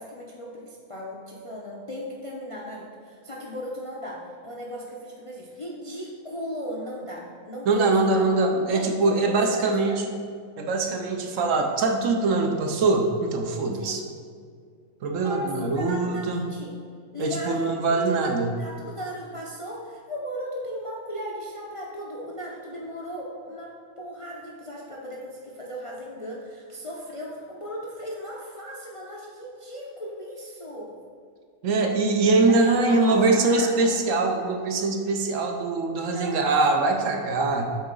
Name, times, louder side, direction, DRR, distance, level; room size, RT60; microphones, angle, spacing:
voice 1, 0.0-8.3 8.6-10.0 13.8-14.0 15.2-16.7 17.1-17.7 18.2-18.3 18.6-30.9 32.5-33.9 36.1-36.5, equal, 40° left, -4 dB, 0.5 m, -37 dB
voice 2, 7.7-10.1 10.6-14.0 15.0-16.5 17.2-18.5 31.6-37.7, right 3 dB, 70° right, 3 dB, 1.0 m, -23 dB
8.2 x 3.9 x 3.8 m, 2.1 s
omnidirectional pair, 1.5 m